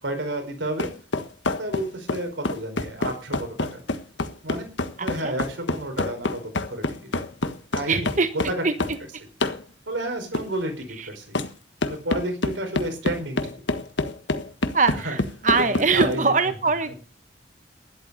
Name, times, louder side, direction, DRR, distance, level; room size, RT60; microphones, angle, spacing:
voice 1, 0.0-0.9 1.6-3.8 4.4-4.7 5.0-6.4 6.7-7.1 7.7-8.1 8.5-8.9 9.9-11.4 11.9-13.5 15.0-15.2 15.6-16.2 16.8-16.9, right 1 dB, 90° right, 5 dB, 4.7 m, -31 dB
sound 1, 0.8-9.0 9.4-9.6 10.3-10.5 11.3-11.5 11.8-16.1, left 2 dB, 80° left, 1.5 m, -27 dB
voice 2, 5.0-5.3 7.9-8.3 8.6-8.7 11.0-11.1 14.7-16.9, right 4 dB, 40° right, 10 dB, 1.3 m, -22 dB
12.5 x 11.5 x 6.8 m, 0.37 s
head